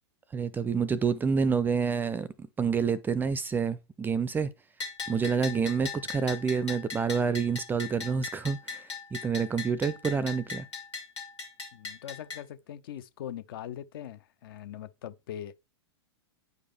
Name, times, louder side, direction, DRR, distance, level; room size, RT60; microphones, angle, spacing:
voice 1, 0.3-4.5 5.1-10.7, right 6 dB, 15° right, 0.4 m, -28 dB
Bell, 4.8-12.4, left 5 dB, 85° left, 2.3 m, -39 dB
voice 2, 11.7-15.5, left 10 dB, 55° left, 0.8 m, -41 dB
9.3 x 5.1 x 3.4 m
figure-of-eight pair, 105°, 14 cm